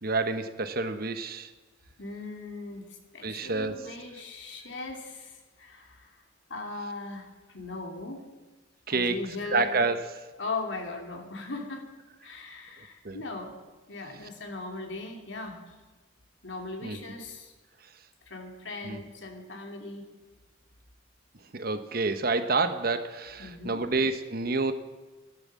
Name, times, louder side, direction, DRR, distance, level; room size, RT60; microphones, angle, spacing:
voice 1, 0.0-1.5 3.2-3.8 8.9-9.2 9.5-10.3 13.0-13.2 16.8-17.0 18.8-19.0 21.5-24.7, right 3 dB, 50° right, 10 dB, 1.0 m, -28 dB
voice 2, 2.0-6.2 6.5-8.3 8.9-9.8 10.4-11.9 12.2-13.6 13.9-15.8 16.4-17.5 18.3-20.0 23.4-23.8, left 3 dB, 70° left, 3 dB, 2.7 m, -39 dB
14.0 x 12.0 x 7.5 m, 1.2 s
head